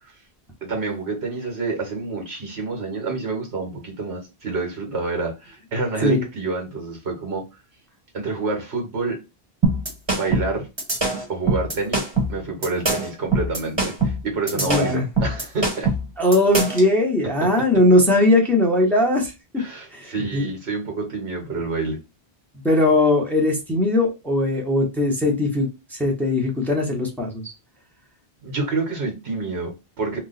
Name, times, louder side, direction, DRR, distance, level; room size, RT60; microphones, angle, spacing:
voice 1, 0.6-7.4 8.1-9.2 10.1-10.7 11.3-15.9 19.6-22.0 28.4-30.2, right 3 dB, 85° right, 1.4 m, -28 dB
sound 1, 9.6-16.9, right 2 dB, 25° right, 1.1 m, -23 dB
voice 2, 14.5-15.0 16.2-19.3 19.9-20.5 22.6-27.5, left 1 dB, ahead, 0.9 m, -19 dB
2.8 x 2.2 x 4.0 m
omnidirectional pair, 1.1 m